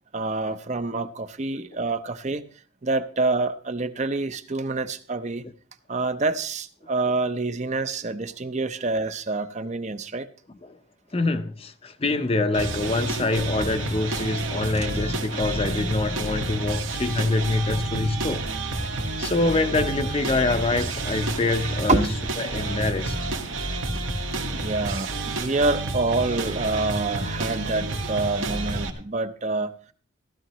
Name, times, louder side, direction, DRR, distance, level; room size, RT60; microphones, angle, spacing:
voice 1, 0.1-2.4 2.8-5.4 5.9-10.3 14.7-14.9 21.9-22.1 24.5-29.7, right 3 dB, 35° right, 0.7 m, -27 dB
voice 2, 11.1-18.4 19.2-22.0 22.4-23.3, left 2 dB, 30° left, 0.6 m, -25 dB
sound 1, 12.5-28.9, right 2 dB, 80° right, 1.8 m, -29 dB
15.0 x 12.5 x 3.0 m
head